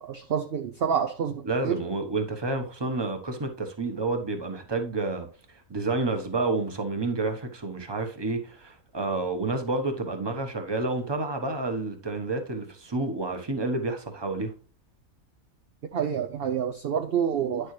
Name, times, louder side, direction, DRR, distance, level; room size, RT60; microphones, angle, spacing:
voice 1, 0.0-1.8 15.9-17.7, right 8 dB, 55° right, 0.7 m, -28 dB
voice 2, 1.4-5.3 5.7-14.5, right 3 dB, 20° right, 1.1 m, -29 dB
9.8 x 6.7 x 3.2 m
omnidirectional pair, 1.5 m